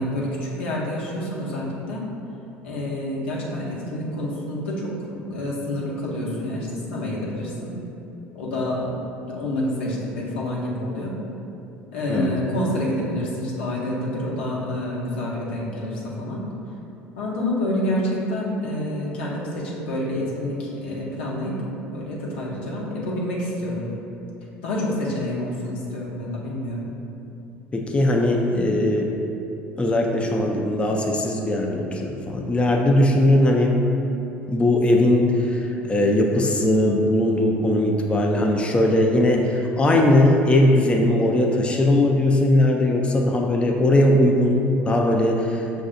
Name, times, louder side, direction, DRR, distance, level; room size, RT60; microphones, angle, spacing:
voice 1, 0.0-2.1 2.6-7.8 8.3-8.9 9.3-11.2 11.9-16.5 17.2-21.6 21.9-23.9 24.6-26.9, left 1 dB, 80° left, -5 dB, 0.7 m, -28 dB
voice 2, 27.7-29.1 29.8-33.8 34.5-45.8, left 1 dB, 20° left, 0 dB, 0.5 m, -19 dB
6.0 x 2.6 x 2.5 m, 2.8 s
hypercardioid pair, 65°, 6 cm